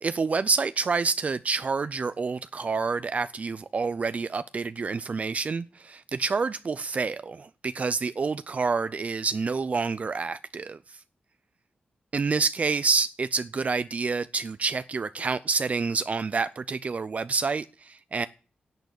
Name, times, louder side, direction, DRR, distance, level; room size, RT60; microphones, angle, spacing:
voice 1, 0.0-11.0 12.1-18.3, right 4 dB, 50° right, 0.5 m, -28 dB
11.0 x 8.0 x 8.2 m
cardioid pair, 75°, 3 cm